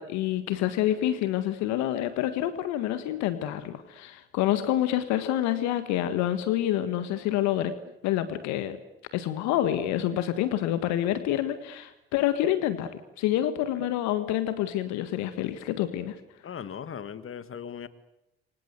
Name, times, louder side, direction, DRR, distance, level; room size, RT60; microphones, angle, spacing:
voice 1, 0.0-7.7 8.0-8.8 9.1-16.2, left 12 dB, 70° left, 11 dB, 1.7 m, -27 dB
voice 2, 13.4-13.9 16.4-17.9, left 8 dB, 45° left, 13 dB, 2.0 m, -39 dB
27.5 x 25.0 x 8.2 m, 0.90 s
hypercardioid pair, 45°, 29 cm